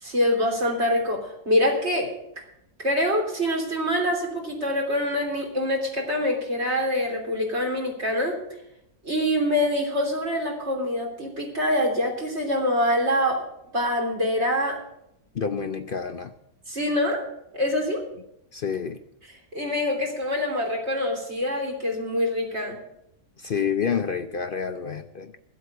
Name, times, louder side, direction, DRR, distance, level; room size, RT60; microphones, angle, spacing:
voice 1, 0.0-2.1 2.8-8.4 9.0-13.4 13.7-14.8 16.7-17.2 17.5-18.0 19.5-22.8, left 1 dB, 45° right, 0 dB, 3.5 m, -25 dB
voice 2, 15.3-16.3 18.5-19.0 23.4-25.3, left 6 dB, 55° left, 8 dB, 0.6 m, -28 dB
14.0 x 8.2 x 7.9 m, 0.79 s
omnidirectional pair, 1.6 m